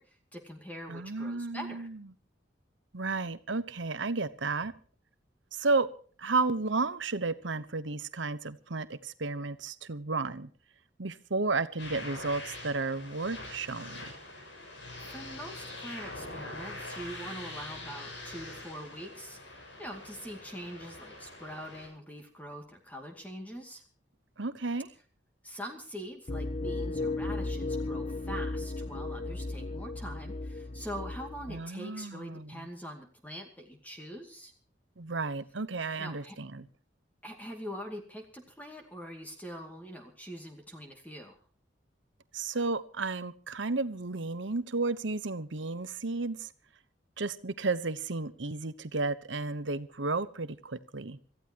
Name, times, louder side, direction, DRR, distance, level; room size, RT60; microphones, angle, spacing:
voice 1, 0.0-1.9 14.6-14.7 15.0-23.8 25.4-34.5 36.0-36.4 37.2-41.4, equal, 10° left, 3 dB, 2.3 m, -43 dB
voice 2, 0.9-2.0 2.9-4.7 5.5-5.9 6.2-10.5 11.0-14.1 24.4-24.9 31.5-32.7 35.0-36.7 42.3-46.5 47.2-51.2, right 3 dB, 80° right, 14 dB, 1.0 m, -33 dB
sound 1, 11.8-21.9, left 2 dB, 75° left, 7.1 m, -44 dB
sound 2, 26.3-31.6, left 2 dB, 35° left, 0.6 m, -35 dB
26.5 x 14.5 x 3.0 m, 0.40 s
head